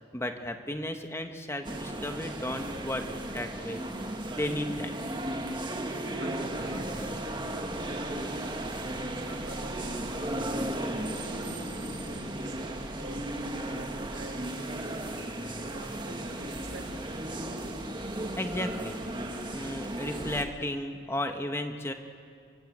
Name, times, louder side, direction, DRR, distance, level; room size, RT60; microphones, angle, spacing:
voice 1, 0.1-3.8 4.3-5.0 18.4-19.0 19.5-21.9, left 1 dB, 15° left, 5 dB, 1.3 m, -34 dB
sound 1, 1.6-20.4, right 1 dB, 25° right, 1.6 m, -35 dB
voice 2, 6.2-7.7 8.0-10.5 11.3-15.1 15.6-16.9, right 1 dB, 70° right, 1 dB, 5.4 m, -46 dB
29.5 x 16.0 x 8.1 m, 2.2 s
head